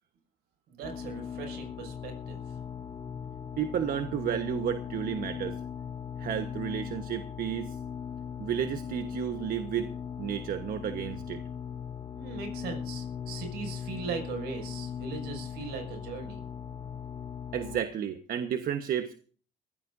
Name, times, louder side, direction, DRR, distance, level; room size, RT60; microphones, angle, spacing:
voice 1, 0.7-2.4 12.1-16.4, right 5 dB, 80° right, 4 dB, 6.4 m, -39 dB
sound 1, 0.8-17.8, left 7 dB, 30° left, 1.1 m, -39 dB
voice 2, 3.6-5.6 6.2-7.8 8.4-9.9 10.2-11.4 17.5-19.1, right 9 dB, 60° right, 8 dB, 1.3 m, -32 dB
22.5 x 16.0 x 2.7 m, 0.42 s
cardioid pair, 110°, 17 cm